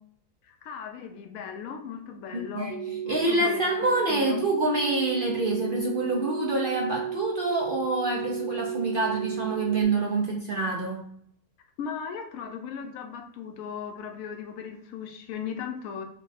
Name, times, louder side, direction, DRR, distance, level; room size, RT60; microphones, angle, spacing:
voice 1, 0.4-2.8 3.0-3.6 4.1-4.4 11.8-16.0, left 7 dB, 70° left, 4 dB, 1.0 m, -37 dB
voice 2, 2.3-11.0, right 2 dB, 60° right, -1 dB, 0.5 m, -27 dB
sound 1, 2.7-9.8, right 9 dB, 35° right, 1.0 m, -33 dB
4.0 x 2.3 x 4.0 m, 0.66 s
omnidirectional pair, 1.7 m